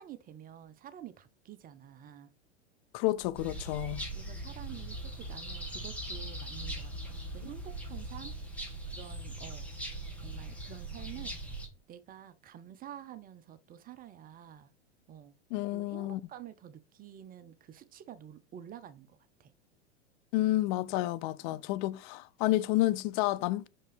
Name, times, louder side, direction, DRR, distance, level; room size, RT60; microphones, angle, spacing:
voice 1, 0.0-2.3 4.1-8.4 8.9-9.7 10.2-11.4 11.9-14.7 15.1-15.3 15.7-19.5 21.4-21.6, right 11 dB, 25° right, 0.7 m, -49 dB
voice 2, 2.9-4.0 15.5-16.2 20.3-23.7, left 16 dB, 45° left, 0.6 m, -30 dB
sound 1, 3.0-4.6 6.1-7.9, equal, 85° left, 2.4 m, -55 dB
sound 2, 3.3-11.7, right 1 dB, 5° left, 2.6 m, -40 dB
5.9 x 5.4 x 5.1 m
hypercardioid pair, 100°, 35 cm